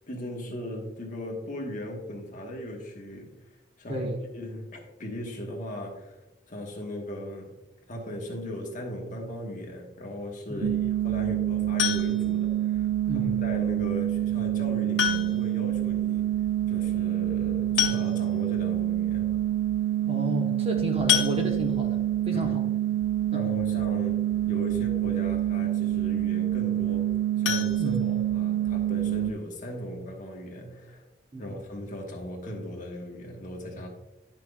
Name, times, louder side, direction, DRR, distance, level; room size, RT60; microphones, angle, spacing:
voice 1, 0.1-3.3 3.8-6.2 6.5-7.6 7.9-16.2 16.7-19.3 22.3-22.6 23.3-27.1 27.4-31.0 31.4-33.9, left 1 dB, 45° left, 0 dB, 1.3 m, -38 dB
voice 2, 3.9-4.2 10.5-10.7 13.1-13.4 20.1-22.0 22.3-22.6 23.3-23.5 27.8-28.0 31.3-31.5, equal, 35° right, 2 dB, 1.0 m, -32 dB
sound 1, 10.6-29.3, right 12 dB, 90° right, 0.5 m, -27 dB
sound 2, 11.8-12.4 13.9-14.0 15.0-15.6 15.9-16.0 16.3-16.4 17.4-17.5 17.8-18.5 19.0-19.1 19.5-19.7 21.1-21.9 27.4-28.6 29.0-29.1 29.5-29.6 30.0-30.1, left 10 dB, 85° left, 0.9 m, -28 dB
10.5 x 6.0 x 2.3 m, 0.98 s
head